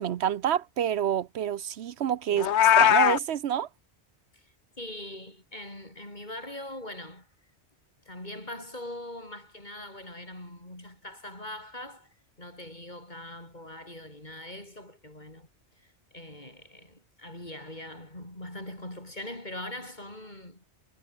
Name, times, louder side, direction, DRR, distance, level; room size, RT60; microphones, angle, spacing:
voice 1, 0.0-2.5 2.8-3.7, right 10 dB, 75° right, 1.0 m, -28 dB
Meow, 2.4-3.2, left 10 dB, 85° left, 1.1 m, -19 dB
voice 2, 4.3-7.3 8.0-15.5 15.8-20.6, left 1 dB, 40° left, 6.5 m, -42 dB
omnidirectional pair, 1.1 m